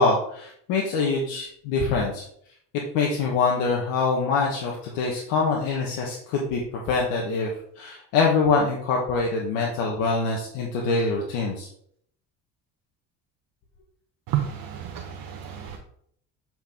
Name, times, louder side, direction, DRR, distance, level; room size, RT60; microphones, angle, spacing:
voice 1, 0.0-2.2 2.9-11.7, left 4 dB, 80° left, -2 dB, 1.3 m, -24 dB
voice 2, 14.3-15.8, right 11 dB, 65° right, 2 dB, 1.0 m, -30 dB
7.4 x 4.5 x 3.6 m, 0.66 s
supercardioid pair, 75°, 37 cm